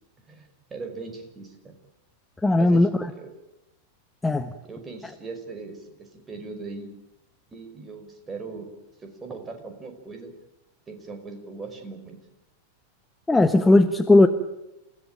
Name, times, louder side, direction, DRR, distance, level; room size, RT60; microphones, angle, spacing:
voice 1, 0.3-1.7 2.5-3.3 4.6-6.9 7.5-8.7 9.0-10.3 10.9-12.2, right 4 dB, 20° right, 5 dB, 5.5 m, -39 dB
voice 2, 2.4-3.1 4.2-4.5 13.3-14.3, left 2 dB, 10° left, 9 dB, 1.2 m, -17 dB
28.5 x 17.0 x 9.1 m, 0.95 s
figure-of-eight pair, 90°, 0 cm